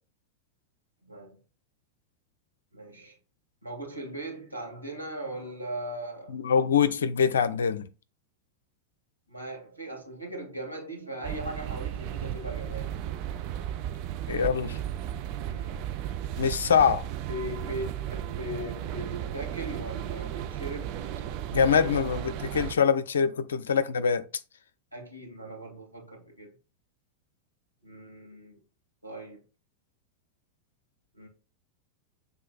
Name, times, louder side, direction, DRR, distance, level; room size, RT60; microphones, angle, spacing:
voice 1, 1.0-1.4 2.7-3.2 3.6-6.4 9.3-13.0 15.4-15.8 16.7-17.0 17.3-20.9 21.5-21.9 24.9-26.5 27.8-28.6 29.0-29.4 31.1-31.3, right 1 dB, 85° right, 2.4 m, -39 dB
voice 2, 6.3-7.9 14.3-14.8 16.4-17.0 21.5-24.3, left 7 dB, 65° left, 0.6 m, -24 dB
sound 1, 11.2-22.7, right 10 dB, 45° right, 0.6 m, -35 dB
7.5 x 3.6 x 4.1 m
figure-of-eight pair, 90°, 0 cm